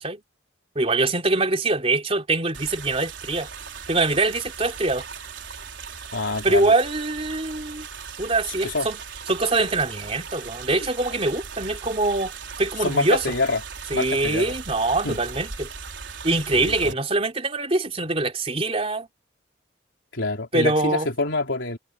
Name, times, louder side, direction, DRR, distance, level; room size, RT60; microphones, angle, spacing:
voice 1, 0.8-3.5 3.9-5.0 6.4-7.9 8.2-9.0 9.3-12.3 12.6-13.2 13.9-15.7 16.2-19.1 20.5-21.1, right 2 dB, 30° right, 3.6 m, -23 dB
sound 1, 2.5-16.9, right 6 dB, 70° right, 4.6 m, -38 dB
voice 2, 6.1-6.7 8.5-8.9 12.8-13.6 13.9-14.5 15.0-15.2 16.5-16.9 20.1-21.8, left 3 dB, 75° left, 3.6 m, -26 dB
head